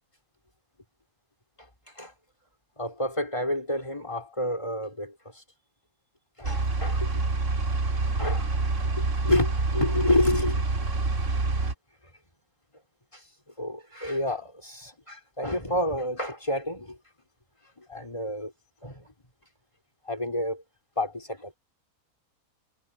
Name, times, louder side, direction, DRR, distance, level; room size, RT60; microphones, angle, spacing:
voice 1, 2.8-5.4 6.4-7.1 8.2-8.5 9.0-10.7 11.3-11.4 13.1-13.2 13.6-17.0 17.8-18.5 18.8-19.1 20.1-20.6 21.0-21.6, left 1 dB, 20° left, 3.9 m, -29 dB
smallrally trafficperspective, 6.4-11.7, right 3 dB, 55° right, 2.5 m, -27 dB
omnidirectional pair, 1.5 m